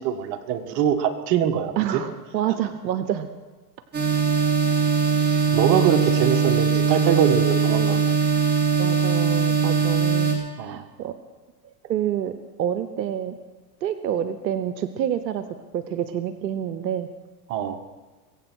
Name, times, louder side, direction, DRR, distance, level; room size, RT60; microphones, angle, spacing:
voice 1, 0.0-1.7 5.1-8.2 10.6-10.8 17.5-17.8, right 9 dB, 55° right, 5 dB, 1.8 m, -23 dB
voice 2, 1.8-3.3 8.8-11.1 11.8-12.3 12.6-13.3 13.8-15.4 15.7-17.1, right 10 dB, 90° right, 10 dB, 1.0 m, -27 dB
sound 1, 3.9-10.3, right 5 dB, 20° right, 3.9 m, -21 dB
22.0 x 8.5 x 6.3 m, 1.2 s
hypercardioid pair, 110°, 50 cm